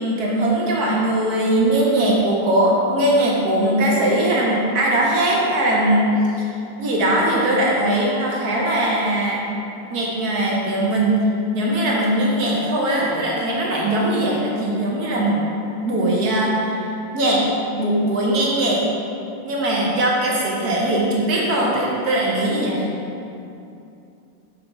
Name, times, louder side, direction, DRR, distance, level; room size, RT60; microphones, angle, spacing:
voice 1, 0.0-9.4 9.9-11.2 11.5-15.4 15.8-18.8 19.4-23.0, right 1 dB, 55° right, -3 dB, 1.2 m, -20 dB
6.0 x 5.7 x 3.8 m, 2.7 s
omnidirectional pair, 2.4 m